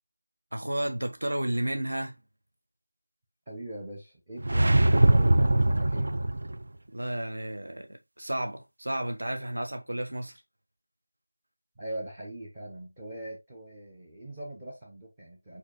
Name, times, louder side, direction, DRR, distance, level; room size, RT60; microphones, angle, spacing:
voice 1, 0.5-2.2 6.9-10.4, right 1 dB, 60° right, 1.4 m, -32 dB
voice 2, 3.5-6.1 11.8-15.6, right 1 dB, 15° right, 0.8 m, -41 dB
sound 1, 4.4-6.6, right 1 dB, 45° right, 0.4 m, -22 dB
4.9 x 4.6 x 2.3 m
figure-of-eight pair, 170°, 0 cm